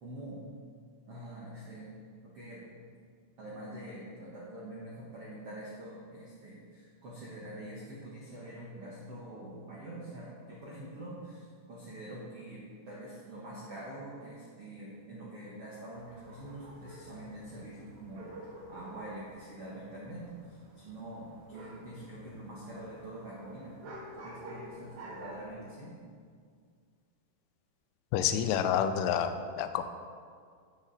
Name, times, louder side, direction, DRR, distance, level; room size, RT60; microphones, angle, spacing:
voice 1, 0.0-0.4 1.1-1.9 2.2-2.6 3.4-18.2 18.7-20.2 20.5-23.8 24.2-25.9, right 1 dB, 90° right, -6 dB, 1.3 m, -45 dB
sound 1, 15.9-25.5, right 1 dB, 70° right, 1.7 m, -50 dB
voice 2, 28.1-29.9, left 9 dB, 85° left, 9 dB, 3.0 m, -29 dB
13.0 x 7.2 x 4.1 m, 2.1 s
omnidirectional pair, 5.3 m